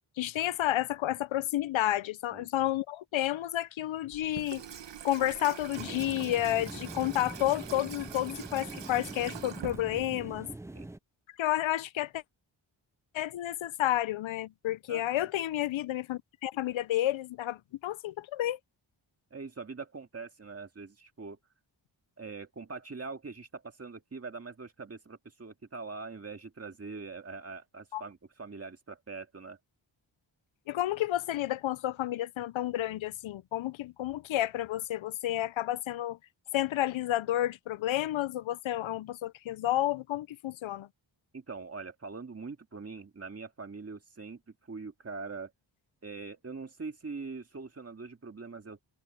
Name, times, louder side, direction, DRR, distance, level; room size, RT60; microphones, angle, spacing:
voice 1, 0.2-4.6 5.0-10.5 11.4-12.2 13.1-18.6 27.9-28.0 30.7-36.2 36.5-40.9, left 13 dB, 85° left, 0.6 m, -31 dB
Water tap faucet / Sink (filling or washing), 4.1-10.4, right 8 dB, 65° right, 1.2 m, -44 dB
sound 1, 5.7-11.0, right 1 dB, 5° right, 0.4 m, -43 dB
voice 2, 14.9-15.3 19.3-21.4 22.2-29.6 41.3-45.5 46.0-48.8, right 4 dB, 30° right, 2.1 m, -43 dB
wide cardioid pair, 165°, 46 cm